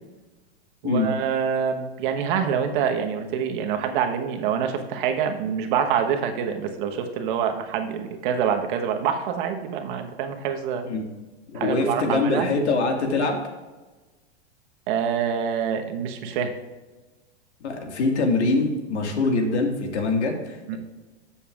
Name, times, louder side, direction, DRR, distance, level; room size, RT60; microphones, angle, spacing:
voice 1, 0.8-10.9 11.5-12.5 14.9-16.5 19.3-19.4 20.7-20.8, right 7 dB, 50° right, 5 dB, 1.1 m, -26 dB
voice 2, 11.5-13.4 17.6-20.8, left 3 dB, 80° left, 3 dB, 2.0 m, -24 dB
14.0 x 7.1 x 2.4 m, 1.2 s
hypercardioid pair, 140°, 33 cm